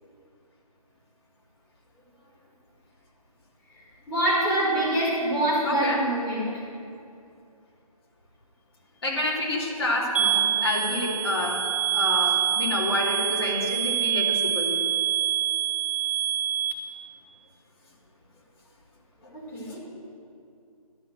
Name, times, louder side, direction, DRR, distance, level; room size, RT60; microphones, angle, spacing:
voice 1, 4.1-6.5 19.3-19.8, right 1 dB, 5° left, -10 dB, 2.0 m, -25 dB
voice 2, 5.6-6.0 9.0-11.7 11.9-14.8, left 2 dB, 40° left, -3 dB, 2.8 m, -28 dB
sound 1, 10.1-16.7, right 10 dB, 20° right, 0.8 m, -25 dB
12.0 x 6.9 x 7.7 m, 2.5 s
figure-of-eight pair, 170°, 20 cm